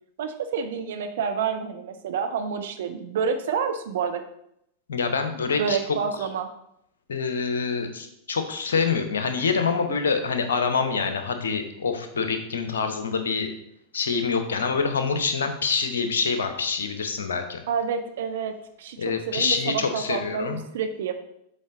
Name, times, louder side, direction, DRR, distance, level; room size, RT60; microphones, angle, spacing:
voice 1, 0.2-4.2 5.6-6.5 17.7-21.1, right 6 dB, 60° right, 7 dB, 0.6 m, -28 dB
voice 2, 4.9-5.8 7.1-13.5 13.9-17.6 19.0-20.6, left 5 dB, 65° left, 7 dB, 0.9 m, -26 dB
7.6 x 4.1 x 3.8 m, 0.77 s
figure-of-eight pair, 90°, 0 cm